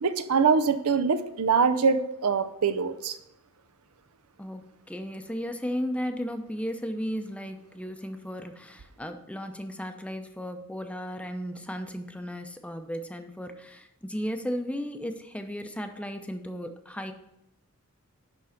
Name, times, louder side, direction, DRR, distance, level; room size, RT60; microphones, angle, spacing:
voice 1, 0.0-3.2, right 5 dB, 85° right, 12 dB, 0.6 m, -24 dB
voice 2, 4.4-17.1, equal, 5° left, 7 dB, 0.6 m, -35 dB
10.5 x 3.8 x 5.8 m, 0.88 s
head